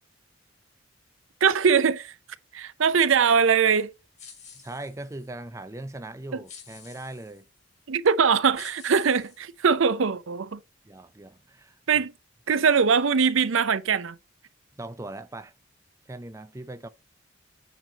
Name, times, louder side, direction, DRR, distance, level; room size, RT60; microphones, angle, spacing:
voice 1, 1.4-2.1 2.5-3.9 7.9-10.6 11.9-12.1 12.5-14.2, right 6 dB, 75° right, 0.6 m, -22 dB
sound 1, 4.2-5.3 6.5-7.4 8.0-8.2 8.5-9.9, left 6 dB, 35° left, 2.6 m, -49 dB
voice 2, 4.6-7.5 10.8-12.1 14.7-15.5 16.1-16.9, right 2 dB, 15° right, 0.5 m, -40 dB
9.0 x 3.0 x 5.0 m
head